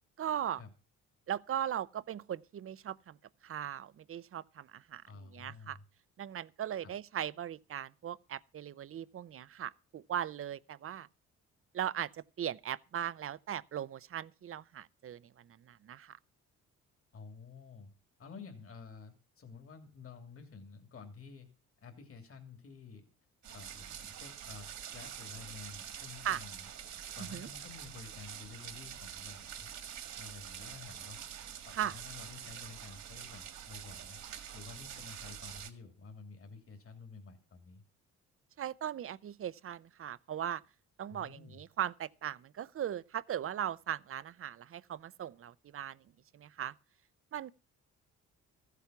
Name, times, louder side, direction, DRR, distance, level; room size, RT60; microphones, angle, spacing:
voice 1, 0.2-0.6 1.3-3.2 3.4-5.8 6.2-11.1 11.7-16.2 26.2-26.4 27.2-27.5 31.7-32.0 38.6-40.6 41.0-46.0 46.3-46.7 47.3-47.5, right 10 dB, 45° right, 0.6 m, -38 dB
voice 2, 5.1-5.8 6.8-6.9 17.1-17.9 18.2-21.5 21.8-23.0 23.5-26.6 27.1-29.7 30.2-31.2 31.6-34.2 34.5-37.8 41.1-41.6, left 4 dB, 45° left, 2.9 m, -51 dB
sound 1, 23.4-35.7, right 9 dB, 70° right, 1.9 m, -46 dB
14.5 x 8.3 x 5.8 m
cardioid pair, 90°, 30 cm